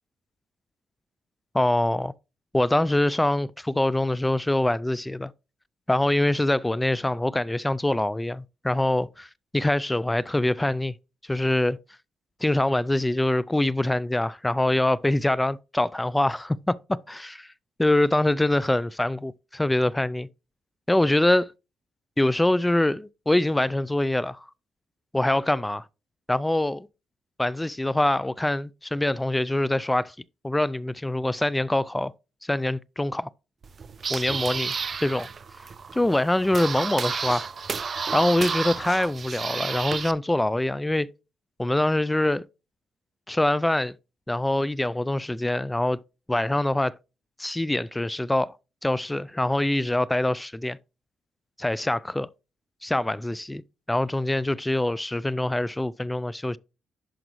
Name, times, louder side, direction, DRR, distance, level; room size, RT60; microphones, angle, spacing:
voice 1, 1.5-2.1 2.5-5.3 5.9-9.3 9.5-10.9 11.2-11.8 12.4-17.4 17.8-20.3 20.9-21.5 22.2-24.5 25.1-25.8 26.3-26.9 27.4-30.1 30.4-32.1 32.4-33.3 34.1-35.3 35.9-37.5 38.1-41.1 41.6-42.4 43.3-43.9 44.3-46.0 46.3-47.0 47.4-48.5 48.8-50.8 51.6-52.3 52.8-53.6 53.9-56.6, left 1 dB, 10° left, 0.3 m, -24 dB
sound 1, 33.6-40.1, right 5 dB, 40° right, 0.5 m, -31 dB
11.0 x 5.1 x 3.1 m
cardioid pair, 90°, 0 cm